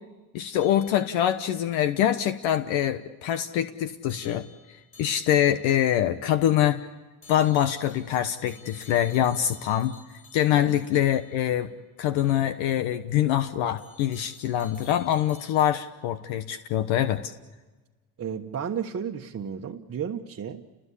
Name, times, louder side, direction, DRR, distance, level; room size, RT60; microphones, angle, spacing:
voice 1, 0.3-6.8 7.3-9.9 10.3-11.7 12.0-17.3, left 11 dB, 75° left, 10 dB, 1.2 m, -24 dB
sound 1, 0.6-1.5 4.1-5.8 7.2-11.6 12.2-12.4 13.8-15.9, left 4 dB, 25° left, 7.3 m, -52 dB
voice 2, 10.5-10.8 18.2-20.6, right 7 dB, 30° right, 1 dB, 1.3 m, -33 dB
29.5 x 20.5 x 8.5 m, 1.2 s
cardioid pair, 115°, 47 cm